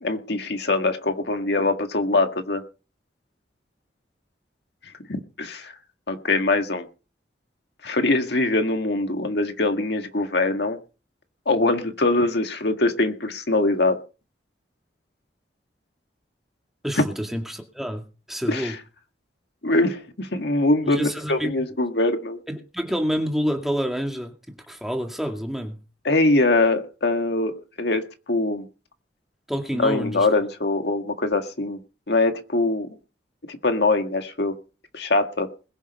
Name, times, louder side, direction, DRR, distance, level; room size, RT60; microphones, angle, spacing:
voice 1, 0.0-2.6 5.1-5.7 6.1-6.9 7.8-10.8 11.5-14.0 18.5-18.7 19.6-22.4 26.1-28.0 28.3-28.7 29.8-31.8 32.1-32.9 33.5-34.6 34.9-35.5, left 2 dB, 65° left, 6 dB, 1.8 m, -23 dB
voice 2, 16.8-18.8 20.8-21.5 22.5-25.8 29.5-30.3, equal, ahead, 3 dB, 2.2 m, -28 dB
21.0 x 7.3 x 5.5 m, 0.35 s
head